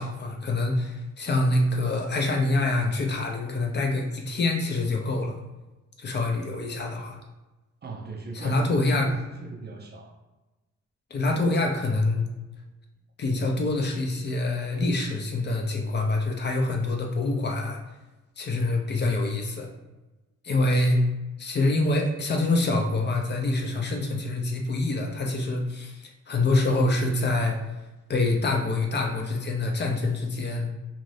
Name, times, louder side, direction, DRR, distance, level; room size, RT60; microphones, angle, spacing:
voice 1, 0.0-5.4 6.0-7.2 8.3-9.1 11.1-12.2 13.2-17.8 18.4-19.7 20.4-21.0 21.4-27.6 28.1-30.7, left 2 dB, 35° left, 1 dB, 0.5 m, -25 dB
voice 2, 7.8-8.8 9.1-10.2, right 3 dB, 35° right, 1 dB, 0.4 m, -39 dB
2.6 x 2.6 x 3.2 m, 1.1 s
cardioid pair, 105°, 30 cm